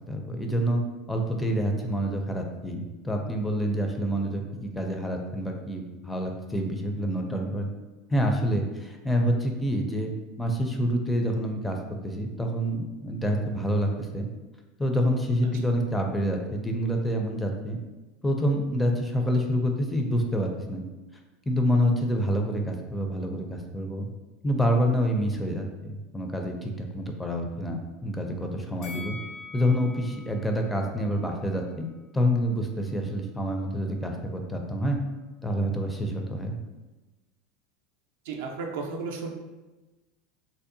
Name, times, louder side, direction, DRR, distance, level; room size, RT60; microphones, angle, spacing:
voice 1, 0.1-0.8 1.1-7.7 8.1-11.8 12.0-14.3 14.8-17.8 18.2-20.8 21.5-24.1 24.4-29.2 29.5-31.9 32.1-35.0 35.4-36.6, equal, 10° left, 2 dB, 0.4 m, -27 dB
Bell, 28.8-32.0 32.4-32.5, left 3 dB, 60° left, 0.7 m, -45 dB
voice 2, 38.2-39.3, right 4 dB, 75° right, 2 dB, 0.4 m, -33 dB
2.6 x 2.0 x 2.6 m, 1.1 s
hypercardioid pair, 95°, 0 cm